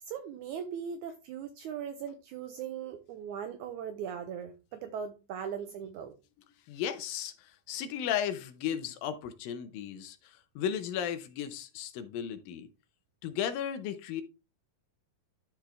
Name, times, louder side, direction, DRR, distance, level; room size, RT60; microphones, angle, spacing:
voice 1, 0.1-6.1, right 8 dB, 80° right, 1.8 m, -39 dB
voice 2, 6.7-12.7 13.2-14.2, left 9 dB, 85° left, 2.6 m, -35 dB
12.0 x 4.4 x 3.4 m
omnidirectional pair, 4.0 m